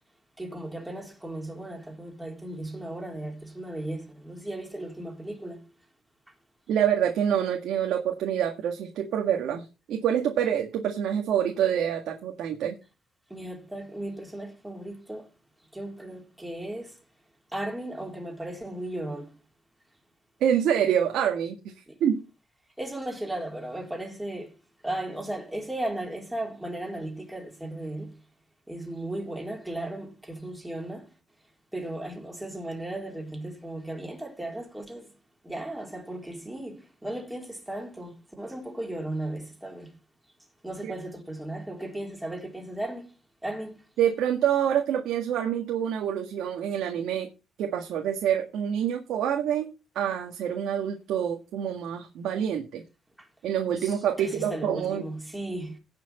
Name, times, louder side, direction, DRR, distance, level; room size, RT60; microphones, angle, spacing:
voice 1, 0.4-5.7 13.3-15.3 15.7-17.0 17.5-19.4 21.9-22.0 22.8-24.5 24.8-28.2 28.7-31.1 31.7-35.1 35.4-40.0 40.6-43.1 43.4-43.8 53.2-53.3 53.8-55.8, right 1 dB, 10° right, 3.9 m, -36 dB
voice 2, 6.7-12.8 20.4-21.6 22.0-22.2 40.8-40.9 44.0-47.3 47.6-49.7 50.0-52.8 53.4-55.0, right 9 dB, 80° right, 1.9 m, -26 dB
17.5 x 6.1 x 4.4 m
cardioid pair, 90°, 0 cm